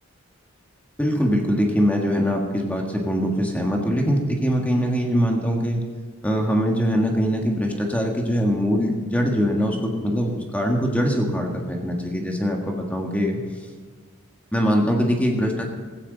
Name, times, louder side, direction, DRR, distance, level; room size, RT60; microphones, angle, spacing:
voice 1, 1.0-5.8 6.2-13.4 14.5-15.7, equal, 5° left, 1 dB, 1.6 m, -22 dB
16.5 x 14.5 x 4.0 m, 1.5 s
head